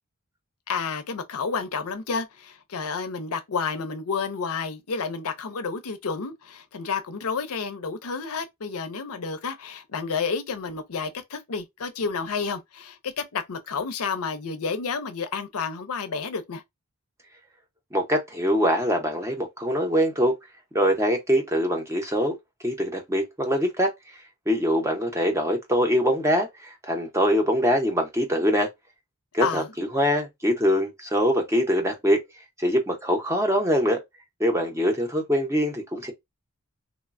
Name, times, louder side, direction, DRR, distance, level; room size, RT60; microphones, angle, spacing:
voice 1, 0.7-16.6 29.4-29.7, left 5 dB, 75° left, 0.6 m, -30 dB
voice 2, 17.9-20.3 20.7-22.4 22.6-23.9 24.5-28.7 29.3-32.2 32.6-34.0 34.4-36.1, equal, 15° right, 0.7 m, -23 dB
3.0 x 2.1 x 2.4 m
head